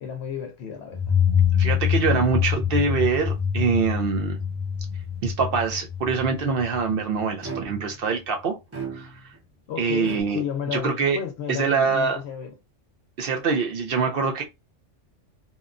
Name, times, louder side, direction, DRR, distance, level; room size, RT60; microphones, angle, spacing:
voice 1, 0.0-1.1 9.7-12.5, left 8 dB, 70° left, 0.8 m, -33 dB
sound 1, 0.9-7.5, left 8 dB, 40° right, 0.9 m, -25 dB
voice 2, 1.6-4.4 5.2-8.6 8.9-9.1 9.8-10.4 10.7-11.2 11.5-12.2 13.2-14.4, right 5 dB, 60° right, 0.6 m, -24 dB
sound 2, 7.4-8.0 8.7-9.4 10.0-10.2, right 5 dB, 15° right, 0.8 m, -35 dB
2.8 x 2.1 x 2.4 m
omnidirectional pair, 1.3 m